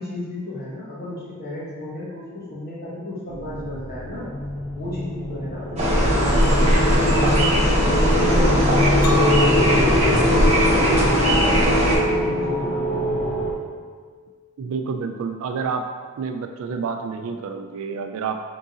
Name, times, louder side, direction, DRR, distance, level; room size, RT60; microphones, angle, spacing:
voice 1, 0.0-4.3 4.7-7.6 8.1-13.2, left 1 dB, 45° left, -9 dB, 1.3 m, -33 dB
sound 1, 3.3-13.5, equal, 5° left, 0.9 m, -26 dB
sound 2, 5.8-12.0, equal, 30° right, 0.8 m, -18 dB
Chink clink, 9.0-14.2, left 5 dB, 80° left, 0.4 m, -28 dB
voice 2, 14.6-15.9 16.2-18.4, right 5 dB, 65° right, 6 dB, 0.3 m, -28 dB
3.8 x 3.7 x 2.7 m, 1.5 s
head